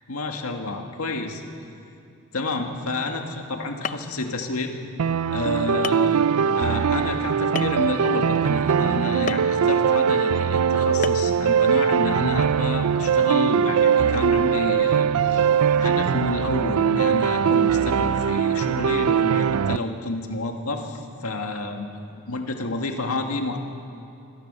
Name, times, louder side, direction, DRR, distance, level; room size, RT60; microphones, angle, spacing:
voice 1, 0.1-1.4 2.3-4.7 5.3-6.3 6.5-15.1 15.3-15.4 15.8-21.9 22.3-23.6, left 2 dB, 85° left, 4 dB, 2.0 m, -29 dB
sound 1, 3.4-3.5 3.8-4.2 5.0-5.1 5.8-6.1 7.5-7.9 9.3-9.5 11.0-11.4, left 5 dB, 35° left, 0.6 m, -31 dB
sound 2, 5.0-19.8, right 7 dB, 85° right, 0.4 m, -21 dB
26.0 x 17.5 x 6.9 m, 2.6 s
head